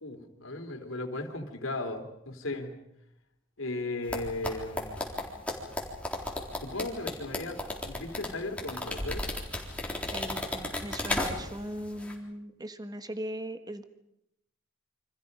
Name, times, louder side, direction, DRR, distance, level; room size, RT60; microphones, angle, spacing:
voice 1, 0.0-2.8 3.6-5.0 6.6-9.2, left 2 dB, 90° left, 5 dB, 3.4 m, -36 dB
sound 1, 4.1-11.7 11.9-12.1, left 1 dB, 5° left, 4.0 m, -34 dB
voice 2, 10.1-13.8, right 1 dB, 20° right, 9 dB, 1.3 m, -39 dB
29.0 x 25.5 x 5.5 m, 0.82 s
head